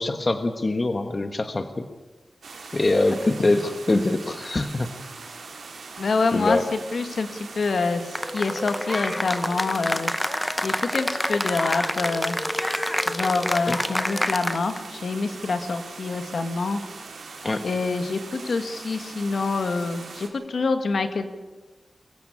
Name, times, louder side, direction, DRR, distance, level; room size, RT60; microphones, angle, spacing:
voice 1, 0.0-1.8 2.7-4.9 6.3-6.6 13.7-13.8 17.4-17.6, left 2 dB, 35° left, 8 dB, 1.3 m, -23 dB
sound 1, 2.4-20.3, right 4 dB, 80° right, 3.9 m, -41 dB
voice 2, 6.0-10.1 10.6-12.4 13.1-16.8 17.6-21.2, left 4 dB, 65° left, 8 dB, 2.0 m, -26 dB
Cheering / Applause, 8.2-14.9, left 1 dB, 10° left, 0.7 m, -27 dB
23.5 x 15.5 x 8.6 m, 1.2 s
wide cardioid pair, 125°, 0 cm